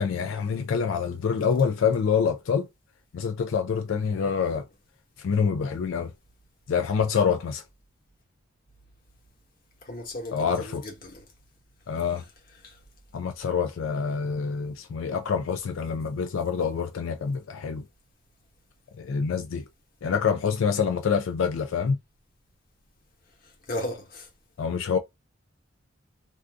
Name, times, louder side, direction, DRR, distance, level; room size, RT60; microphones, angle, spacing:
voice 1, 0.0-2.7 3.1-4.6 5.2-6.1 6.7-7.6 10.3-10.8 11.9-12.2 13.1-17.8 19.0-19.6 20.0-22.0 24.6-25.0, left 6 dB, 85° left, 0.4 m, -26 dB
voice 2, 9.8-11.3 12.6-12.8 23.4-24.3, left 1 dB, 50° left, 1.1 m, -36 dB
2.6 x 2.4 x 3.4 m
head